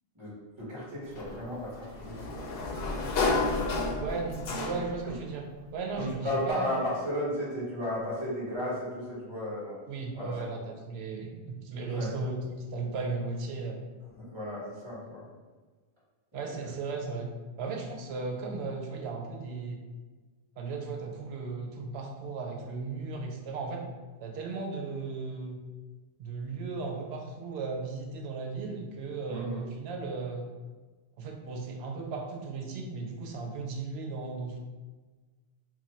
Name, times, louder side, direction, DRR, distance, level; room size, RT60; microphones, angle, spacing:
voice 1, 0.6-2.4 5.9-9.8 10.1-10.4 11.9-12.1 14.1-15.2 16.4-16.6 29.3-29.6, left 1 dB, 30° right, -8 dB, 1.4 m, -34 dB
Sliding door, 1.1-5.1, left 3 dB, 80° left, 0.9 m, -31 dB
voice 2, 4.0-5.4 5.7-6.8 9.9-13.8 16.3-17.3 17.6-19.8 20.6-23.9 24.2-25.6 26.2-30.5 31.2-34.6, right 4 dB, 85° right, 2 dB, 0.8 m, -36 dB
3.0 x 2.2 x 4.2 m, 1.4 s
omnidirectional pair, 1.0 m